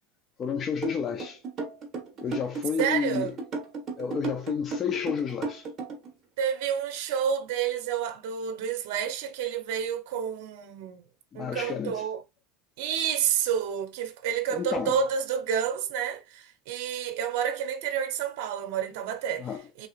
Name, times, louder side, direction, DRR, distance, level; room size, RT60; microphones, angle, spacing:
voice 1, 0.4-1.4 2.2-3.3 4.0-5.7 11.3-12.1 14.5-15.0 19.4-19.6, left 6 dB, 25° left, 0.3 m, -31 dB
sound 1, 0.8-6.1, right 4 dB, 25° right, 1.2 m, -34 dB
voice 2, 2.8-3.3 6.4-11.0 11.3-12.2 12.8-19.5 19.8-19.9, right 8 dB, 65° right, 0.7 m, -29 dB
3.3 x 2.7 x 2.4 m
supercardioid pair, 155°, 0 cm